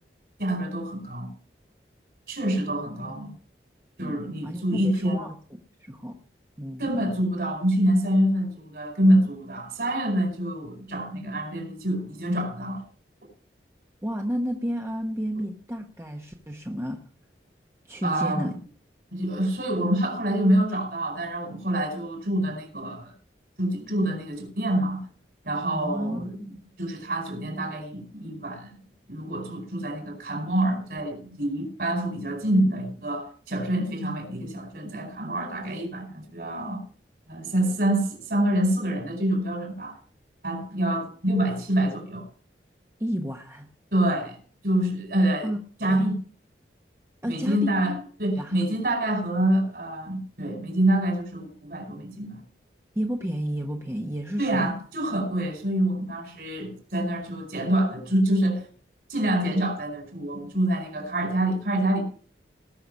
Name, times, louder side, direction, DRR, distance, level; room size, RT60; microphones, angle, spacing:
voice 1, 0.4-1.3 2.3-3.4 4.0-5.2 6.8-12.8 18.0-18.6 19.1-23.1 23.6-25.0 25.4-26.4 26.8-28.8 29.1-36.8 37.3-40.0 40.4-42.2 43.9-44.4 44.6-45.5 45.8-46.2 47.3-52.4 54.4-58.6 59.1-62.0, right 1 dB, 60° right, 4.9 m, -26 dB
voice 2, 4.0-5.3 5.8-6.1 6.6-6.9 14.0-17.0 17.9-18.5 25.7-26.6 43.0-43.7 45.4-45.6 45.9-46.1 47.2-47.7 48.4-48.6 52.9-54.7, equal, 15° right, 1.1 m, -31 dB
19.0 x 6.8 x 5.5 m
head